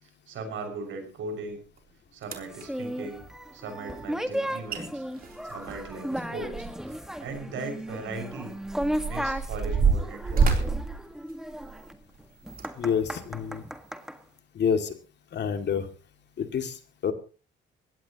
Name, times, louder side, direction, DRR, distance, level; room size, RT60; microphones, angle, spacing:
voice 1, 0.0-1.6 2.1-3.2 3.5-5.0 5.4-8.5 9.0-10.7, right 3 dB, 75° right, 5 dB, 6.2 m, -38 dB
sound 1, 1.8-1.9 2.2-2.7 4.4-4.5 4.7-4.8 5.2-7.0 7.3-7.4 8.1-11.9 12.5-12.7 13.3-13.4, right 5 dB, 45° right, 3.6 m, -27 dB
sound 2, 2.5-14.2, equal, ahead, 1.7 m, -35 dB
voice 2, 12.8-13.6 14.5-14.9 15.3-15.9 16.4-17.1, left 7 dB, 60° left, 7 dB, 2.5 m, -28 dB
21.5 x 17.0 x 3.0 m, 0.34 s
cardioid pair, 90°, 20 cm